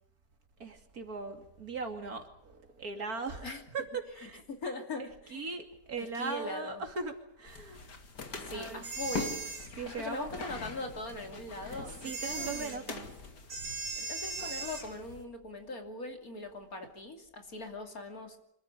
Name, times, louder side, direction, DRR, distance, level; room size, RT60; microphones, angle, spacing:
voice 1, 0.6-4.4 5.0-7.9 8.5-8.9 9.7-10.3 11.6-13.4 13.9-14.0, right 4 dB, 60° right, 5 dB, 3.2 m, -40 dB
voice 2, 4.5-5.5 6.0-6.8 8.4-9.3 9.7-12.9 14.0-18.4, left 2 dB, 60° left, 5 dB, 3.3 m, -41 dB
sound 1, 7.5-15.2, left 4 dB, 85° left, 2.9 m, -44 dB
sound 2, 8.8-9.7 12.0-12.8 13.5-14.9, right 3 dB, 85° right, 4.0 m, -38 dB
26.0 x 14.5 x 9.9 m, 0.79 s
omnidirectional pair, 1.7 m